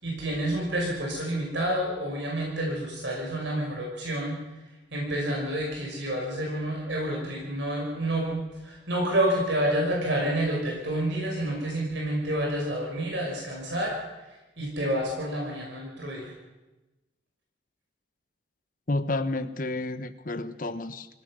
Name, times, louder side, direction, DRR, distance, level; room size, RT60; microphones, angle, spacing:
voice 1, 0.0-4.4 4.9-14.0 14.6-16.3, right 1 dB, 70° right, -1 dB, 5.5 m, -29 dB
voice 2, 18.9-21.1, left 2 dB, 45° left, 11 dB, 1.0 m, -30 dB
26.0 x 16.5 x 6.3 m, 1.1 s
head